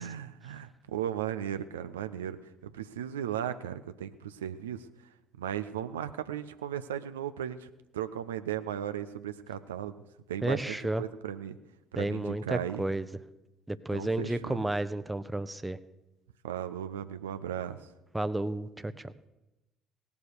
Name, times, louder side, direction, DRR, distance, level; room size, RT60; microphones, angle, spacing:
voice 1, 0.0-4.9 5.4-9.9 10.3-11.6 11.9-12.8 13.9-14.6 16.4-17.9, right 10 dB, 80° right, 11 dB, 0.4 m, -36 dB
voice 2, 10.4-11.0 12.0-13.0 13.7-15.8 18.1-19.1, right 1 dB, 10° right, 14 dB, 0.7 m, -32 dB
17.5 x 7.0 x 6.6 m, 0.98 s
figure-of-eight pair, 55°, 0 cm